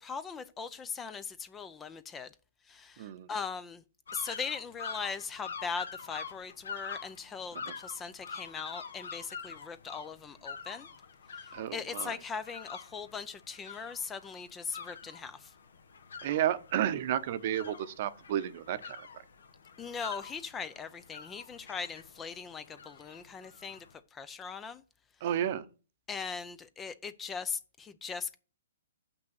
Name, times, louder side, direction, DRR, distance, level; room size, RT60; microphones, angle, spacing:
voice 1, 0.0-2.3 2.7-3.8 4.1-10.9 11.7-15.5 19.8-23.9 24.1-24.8 26.1-28.4, left 5 dB, 15° left, 0.5 m, -40 dB
voice 2, 3.0-3.3 7.5-7.7 11.5-12.2 16.2-19.1 25.2-25.7, right 11 dB, 45° right, 0.8 m, -32 dB
sound 1, 4.1-23.9, left 5 dB, 75° left, 1.2 m, -46 dB
6.3 x 6.0 x 6.4 m
hypercardioid pair, 145°, 0 cm